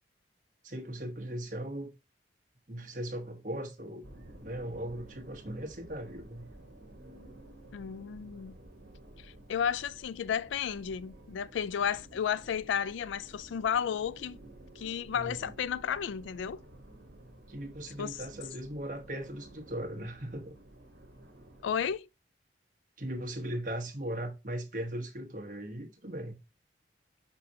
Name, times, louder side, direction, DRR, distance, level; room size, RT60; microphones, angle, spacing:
voice 1, 0.6-1.9 2.7-4.0 4.4-6.5 15.1-15.5 17.5-20.6 23.0-26.4, right 1 dB, 45° right, 1.2 m, -38 dB
sound 1, 4.0-22.0, right 1 dB, 70° right, 1.2 m, -53 dB
voice 2, 7.7-8.6 9.2-14.4 14.8-16.6 18.0-18.2 21.6-22.1, left 8 dB, 85° left, 0.3 m, -33 dB
6.2 x 5.9 x 2.8 m
head